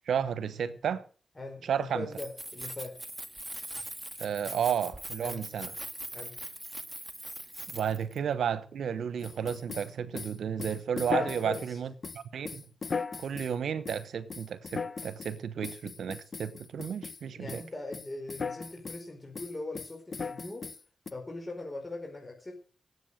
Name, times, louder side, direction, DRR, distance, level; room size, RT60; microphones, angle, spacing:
voice 1, 0.1-1.0 1.7-2.1 4.2-5.7 7.7-12.7 13.2-17.6, right 8 dB, 80° right, 1.0 m, -32 dB
voice 2, 1.3-3.0 5.2-5.4 6.1-6.4 11.2-11.8 17.3-20.6 21.1-22.5, left 2 dB, 30° left, 4.6 m, -41 dB
Keys jangling, 2.0-8.2, right 1 dB, 15° right, 2.0 m, -41 dB
sound 1, 9.2-11.7 12.0-13.5 13.9-14.0 14.3-15.4 15.6-17.2 17.5-17.7 17.9-19.0 19.4-21.1, left 5 dB, 55° left, 1.2 m, -37 dB
17.5 x 8.2 x 6.5 m
supercardioid pair, 40°, 0 cm